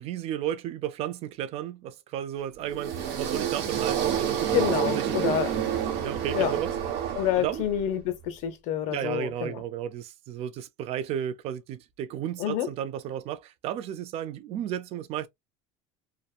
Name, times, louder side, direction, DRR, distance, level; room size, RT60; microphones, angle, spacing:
voice 1, 0.0-5.4 6.0-6.7 7.4-7.6 8.9-15.3, right 10 dB, 50° right, 0.4 m, -33 dB
sound 1, 2.7-7.8, right 9 dB, 75° right, 1.1 m, -29 dB
voice 2, 4.5-5.5 6.3-6.5 7.2-9.6 12.4-12.7, left 11 dB, 60° left, 0.7 m, -28 dB
2.9 x 2.1 x 2.2 m
cardioid pair, 140°, 14 cm